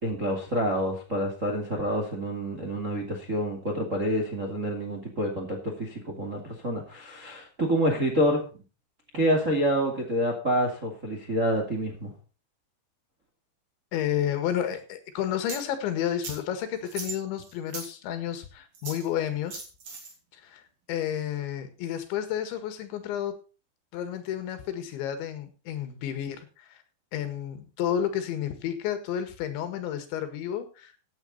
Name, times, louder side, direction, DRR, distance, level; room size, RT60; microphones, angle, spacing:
voice 1, 0.0-8.4 9.1-12.1, equal, 30° right, 2 dB, 1.5 m, -27 dB
voice 2, 13.9-19.6 20.3-20.6 20.9-23.4 23.9-26.8 27.1-30.9, left 10 dB, 75° left, 9 dB, 4.0 m, -31 dB
sound 1, 15.5-15.6 16.2-16.4 16.9-17.9 18.7-19.1 19.5-20.1, right 4 dB, 50° right, 4.6 m, -38 dB
15.5 x 9.3 x 4.1 m, 0.34 s
omnidirectional pair, 5.3 m